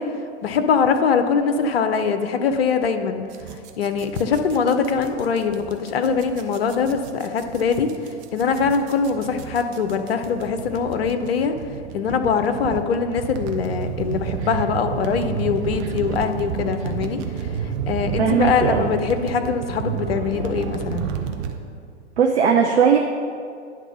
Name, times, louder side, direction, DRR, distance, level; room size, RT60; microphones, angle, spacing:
voice 1, 0.0-3.2 3.8-11.5 11.9-21.1, left 6 dB, 55° left, 8 dB, 0.7 m, -23 dB
sound 1, 3.3-21.6, right 8 dB, 30° right, 0.6 m, -31 dB
voice 2, 18.2-18.9 22.2-23.0, right 7 dB, 70° right, 2 dB, 0.7 m, -18 dB
10.0 x 3.6 x 5.6 m, 2.3 s
figure-of-eight pair, 105°, 35 cm